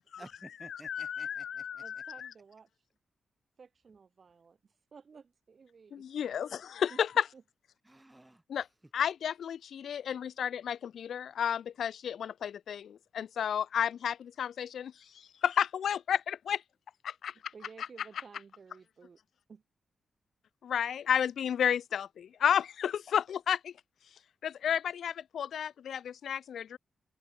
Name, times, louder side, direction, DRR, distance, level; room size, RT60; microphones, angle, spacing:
voice 1, 0.2-1.8 7.9-8.6, right 1 dB, 10° right, 7.3 m, -53 dB
voice 2, 0.7-2.3 5.9-6.5 6.8-7.2 8.5-8.7 8.9-14.9 15.4-16.6 17.2-17.3 20.6-23.7 24.4-26.8, left 8 dB, 70° left, 0.4 m, -32 dB
voice 3, 1.8-2.9 3.6-6.1 6.4-6.6 6.9-7.0 7.3-7.4 17.5-19.2 19.5-19.6, right 5 dB, 40° right, 7.6 m, -54 dB
wide cardioid pair, 180°, 0 cm